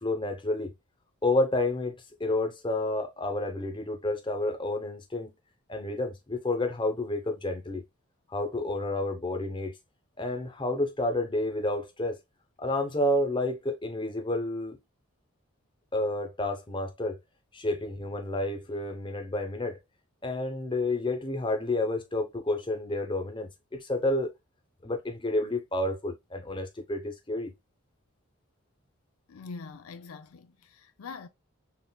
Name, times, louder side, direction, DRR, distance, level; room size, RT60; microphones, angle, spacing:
voice 1, 0.0-0.7 1.2-5.3 5.7-7.8 8.3-9.7 10.2-12.2 12.6-14.8 15.9-17.2 17.5-19.8 20.2-24.3 24.8-27.5, left 2 dB, 20° left, 0.7 m, -30 dB
voice 2, 29.3-31.3, left 4 dB, 85° left, 0.5 m, -43 dB
5.7 x 2.4 x 2.2 m
head